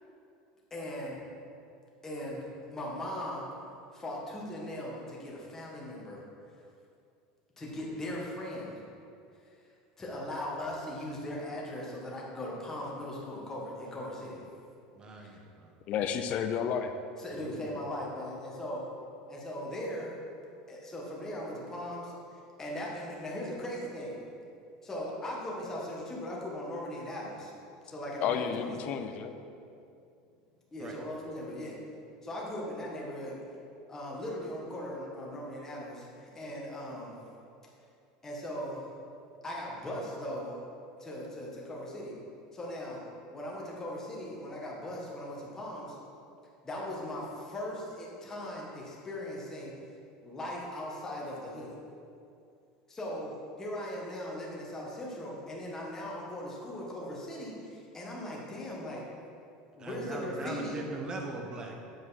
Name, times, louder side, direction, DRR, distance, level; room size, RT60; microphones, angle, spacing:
voice 1, 0.7-1.2 2.0-3.5 3.9-6.2 7.6-8.8 9.4-9.5 10.0-14.4 15.2-15.4 17.2-18.8 19.3-20.1 20.7-24.2 24.8-27.5 27.8-29.2 30.7-31.8 32.2-33.4 33.9-37.1 38.2-38.9 39.4-40.5 41.0-42.1 42.5-43.0 43.3-46.0 46.6-49.7 50.2-51.8 52.9-59.0 59.8-60.8, left 1 dB, 15° left, -4 dB, 1.4 m, -39 dB
voice 2, 15.0-15.7 17.3-17.8 30.8-31.0 59.8-61.7, right 2 dB, 25° right, 2 dB, 0.9 m, -40 dB
voice 3, 15.9-16.9 28.2-29.4, left 8 dB, 45° left, 8 dB, 0.5 m, -31 dB
7.8 x 4.7 x 4.1 m, 2.5 s
supercardioid pair, 135°, 3 cm